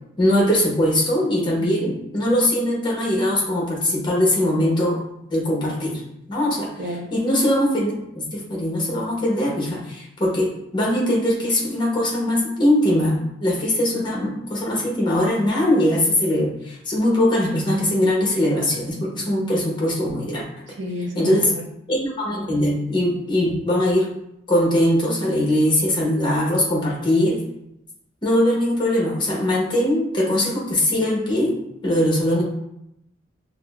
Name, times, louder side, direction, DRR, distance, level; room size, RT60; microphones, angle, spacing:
voice 1, 0.2-5.0 5.3-6.0 6.3-20.4 21.1-21.5 21.9-24.1 24.5-27.4 28.2-31.6 31.8-32.4, left 1 dB, 25° left, -3 dB, 1.0 m, -21 dB
voice 2, 20.7-21.6, left 1 dB, 80° right, 2 dB, 0.6 m, -30 dB
5.9 x 2.1 x 2.3 m, 0.82 s
head